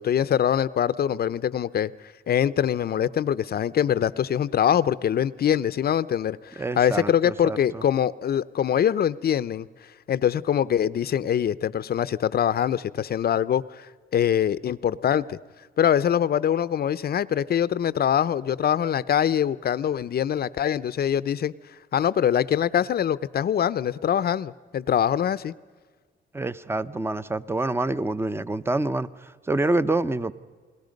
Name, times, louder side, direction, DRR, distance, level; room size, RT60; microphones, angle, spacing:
voice 1, 0.0-1.9 2.3-9.7 10.1-13.9 14.1-15.4 15.8-21.5 21.9-25.5, left 9 dB, 50° left, 17 dB, 0.7 m, -23 dB
voice 2, 6.6-7.8 26.3-30.3, right 2 dB, 10° right, 15 dB, 0.8 m, -27 dB
29.5 x 21.5 x 5.3 m, 1.5 s
cardioid pair, 90°, 20 cm